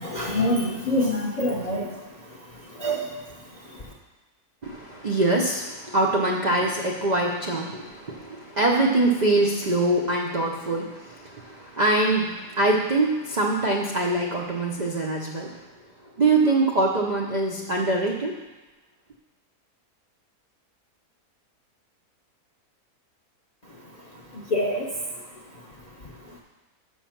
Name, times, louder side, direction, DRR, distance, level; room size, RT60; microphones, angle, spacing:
voice 1, 0.0-1.9 2.8-3.0 24.5-24.8, left 1 dB, 45° left, -2 dB, 0.5 m, -25 dB
voice 2, 4.6-15.7 16.0-18.4, right 2 dB, 60° right, -1 dB, 0.4 m, -24 dB
6.4 x 6.1 x 5.7 m, 1.1 s
omnidirectional pair, 1.7 m